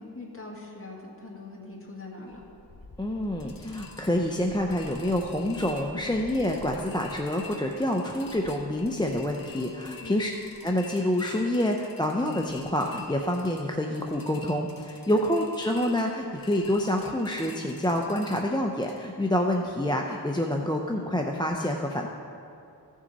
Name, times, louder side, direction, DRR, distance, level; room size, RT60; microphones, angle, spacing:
voice 1, 0.0-2.5 10.0-10.2 15.1-15.2, left 2 dB, 30° left, -2 dB, 1.9 m, -42 dB
sound 1, 2.3-19.0, left 3 dB, 55° left, 1.1 m, -47 dB
voice 2, 3.0-10.3 10.6-22.1, left 1 dB, 10° left, 1 dB, 0.5 m, -27 dB
15.0 x 6.3 x 4.0 m, 2.6 s
wide cardioid pair, 45°, 42 cm